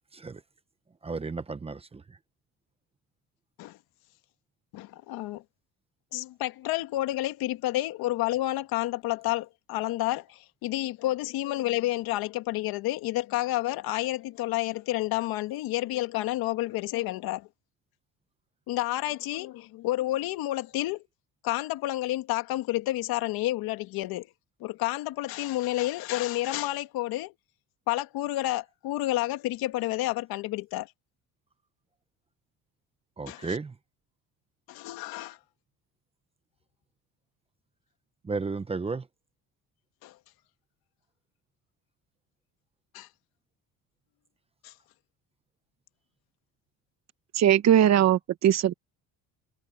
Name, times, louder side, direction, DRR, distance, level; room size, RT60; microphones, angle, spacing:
voice 1, 1.0-2.2 33.2-33.8 38.2-39.1, right 4 dB, 15° right, 1.0 m, -33 dB
voice 2, 4.7-5.4 6.1-17.5 18.7-21.0 21.4-24.3 24.6-27.3 27.9-30.9 33.3-33.6 34.7-35.4 40.0-40.1 42.9-43.1 44.6-44.7, left 16 dB, 75° left, 2.1 m, -30 dB
voice 3, 47.3-48.7, right 10 dB, 45° right, 1.1 m, -20 dB
cardioid pair, 135°, 37 cm